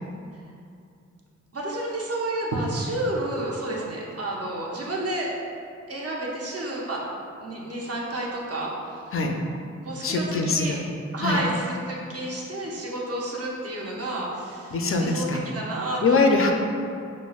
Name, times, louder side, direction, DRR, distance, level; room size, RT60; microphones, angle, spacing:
voice 1, 1.5-5.3 5.9-7.0 7.4-8.7 9.8-10.8 11.1-14.8 15.0-15.3 15.5-16.3, right 1 dB, 55° right, -4 dB, 0.8 m, -30 dB
voice 2, 10.0-10.8 11.2-11.4 14.7-15.4 16.0-16.5, left 3 dB, 50° left, 3 dB, 0.4 m, -22 dB
6.1 x 2.1 x 2.3 m, 2.4 s
wide cardioid pair, 70°, 29 cm